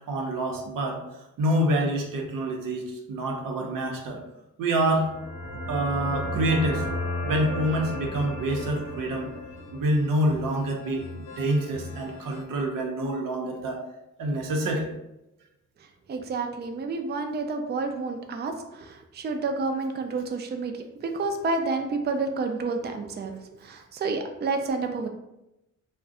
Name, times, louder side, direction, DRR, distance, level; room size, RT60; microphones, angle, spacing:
voice 1, 0.1-1.0 1.4-4.2 4.6-5.1 5.7-6.8 7.2-9.3 9.7-13.8 14.2-14.9, right 1 dB, 90° right, 1 dB, 0.7 m, -26 dB
sound 1, 4.9-12.4, left 1 dB, 80° left, 0.7 m, -34 dB
voice 2, 16.1-23.3 23.6-25.1, right 3 dB, 35° right, 5 dB, 0.4 m, -29 dB
2.5 x 2.1 x 3.6 m, 0.89 s
cardioid pair, 80°, 32 cm